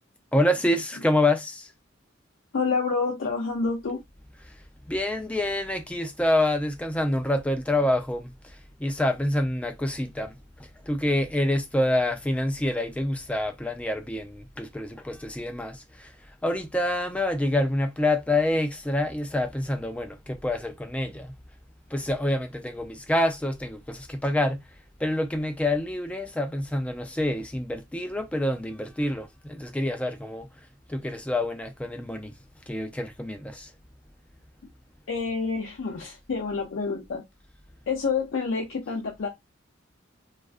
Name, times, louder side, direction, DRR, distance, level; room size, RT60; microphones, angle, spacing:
voice 1, 0.3-1.7 4.9-8.3 8.8-10.4 10.9-16.1 16.4-21.3 21.9-24.6 25.0-30.5 30.9-32.3 32.7-33.7, left 1 dB, 5° left, 0.3 m, -27 dB
voice 2, 2.5-4.0 35.1-37.2 37.9-39.3, left 4 dB, 70° left, 0.5 m, -28 dB
2.4 x 2.2 x 2.4 m
head